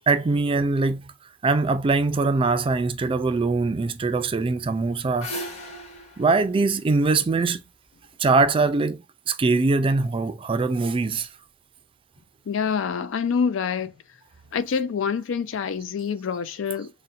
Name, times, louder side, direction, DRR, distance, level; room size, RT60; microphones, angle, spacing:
voice 1, 0.1-1.0 1.4-5.3 6.2-7.6 8.2-9.0 9.3-11.3, right 3 dB, 30° right, 0.3 m, -22 dB
sound 1, 4.7-7.9, equal, 35° left, 0.9 m, -38 dB
voice 2, 12.5-13.9 14.5-16.9, left 6 dB, 90° left, 0.4 m, -26 dB
4.0 x 2.1 x 2.5 m
head